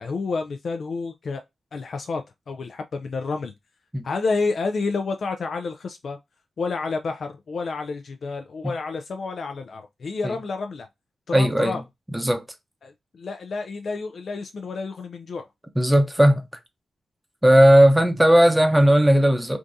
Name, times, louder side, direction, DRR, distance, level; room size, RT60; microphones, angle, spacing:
voice 1, 0.0-1.4 1.7-3.5 4.0-6.2 6.6-10.9 11.3-11.8 12.8-15.5, left 4 dB, 65° left, 0.3 m, -29 dB
voice 2, 11.3-11.8 12.1-12.4 15.8-16.5 17.4-19.6, equal, 10° right, 0.7 m, -16 dB
3.4 x 2.6 x 2.6 m
cardioid pair, 75°, 0 cm